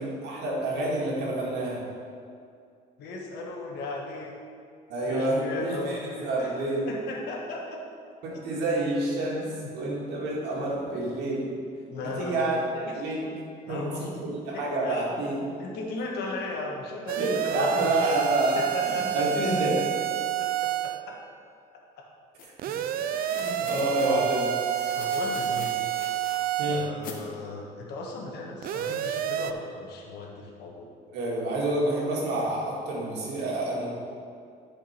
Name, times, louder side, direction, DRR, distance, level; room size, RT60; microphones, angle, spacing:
voice 1, 0.0-1.8 4.9-6.9 8.2-9.5 9.7-11.5 12.2-13.3 13.7-15.4 17.2-19.8 22.7-22.8 23.4-24.5 26.6-26.8 31.1-33.9, right 1 dB, 85° right, -4 dB, 2.2 m, -28 dB
voice 2, 3.0-4.4 5.0-6.5 6.9-7.8 9.6-9.7 11.9-12.4 13.7-14.2 14.5-15.1 15.6-18.0 18.5-19.8 20.2-21.2 23.0-24.3 24.9-25.8 26.7-30.9, left 2 dB, 75° left, -1 dB, 1.5 m, -37 dB
sound 1, 17.1-21.0 22.6-26.9 28.6-29.5, right 9 dB, 60° right, 0.4 m, -29 dB
sound 2, 22.4-22.5 23.1-24.2 24.7-26.4 27.0-27.2, left 5 dB, 55° left, 1.1 m, -43 dB
10.5 x 5.2 x 4.5 m, 2.3 s
cardioid pair, 110°, 17 cm